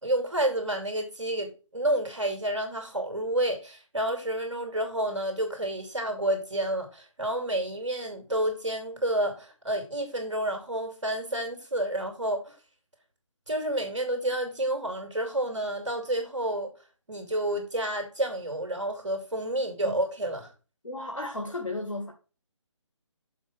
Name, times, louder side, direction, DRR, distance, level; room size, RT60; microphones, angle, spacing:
voice 1, 0.0-12.5 13.5-16.7 17.1-20.5, right 1 dB, 75° right, 2.7 m, -29 dB
voice 2, 20.8-22.1, left 2 dB, 85° left, 1.8 m, -34 dB
7.1 x 4.9 x 6.1 m
figure-of-eight pair, 150°, 16 cm